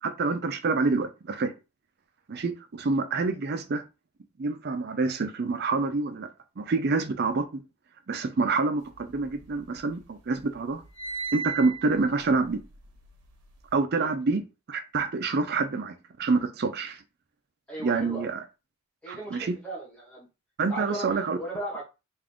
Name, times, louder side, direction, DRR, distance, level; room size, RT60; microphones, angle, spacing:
voice 1, 0.0-1.5 2.3-3.8 4.4-6.3 6.6-7.6 8.1-10.8 11.3-12.6 13.7-14.4 14.7-17.0 17.8-18.4 19.1-19.5 20.6-21.4, right 3 dB, 45° right, 0.4 m, -27 dB
sound 1, 8.9-10.0 10.3-13.7, right 5 dB, 90° right, 0.8 m, -38 dB
voice 2, 17.7-18.3 19.0-20.3 20.7-21.8, right 2 dB, 5° left, 1.3 m, -37 dB
3.7 x 2.5 x 3.5 m
head